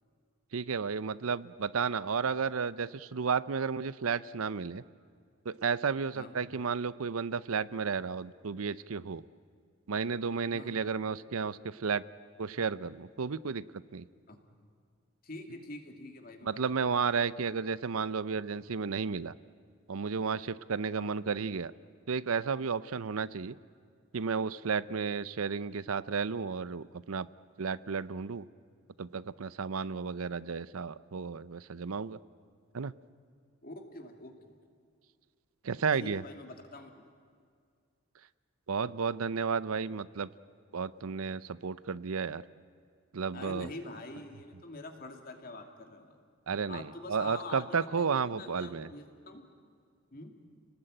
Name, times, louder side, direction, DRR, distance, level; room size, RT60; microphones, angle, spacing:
voice 1, 0.5-4.8 5.4-9.2 9.9-12.0 12.4-13.6 13.9-14.0 16.4-19.3 19.9-21.7 22.1-23.6 24.1-27.3 27.6-28.5 29.0-32.2 32.7-32.9 35.6-36.2 38.7-40.3 40.7-42.4 43.1-43.7 46.5-48.9, right 5 dB, 90° right, 17 dB, 0.7 m, -32 dB
voice 2, 6.1-6.5 10.5-10.7 14.3-14.4 15.2-16.7 21.0-21.1 33.6-34.6 36.0-36.9 43.3-46.2 46.7-49.5 50.1-50.4, left 2 dB, 45° left, 4 dB, 2.6 m, -45 dB
29.0 x 19.0 x 9.0 m, 2.1 s
head